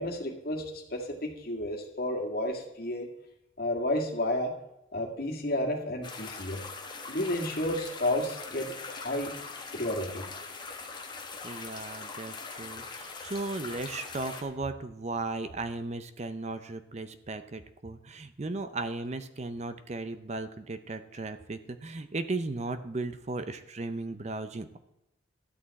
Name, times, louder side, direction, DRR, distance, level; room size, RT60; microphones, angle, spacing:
voice 1, 0.0-3.1 3.6-4.5 4.9-6.6 7.1-9.3 9.7-10.2, left 1 dB, 55° left, 1 dB, 2.0 m, -31 dB
sound 1, 6.0-14.4, left 4 dB, 25° left, 1.3 m, -42 dB
voice 2, 11.4-24.8, right 2 dB, 35° right, 10 dB, 0.6 m, -36 dB
12.5 x 8.5 x 4.2 m, 0.86 s
head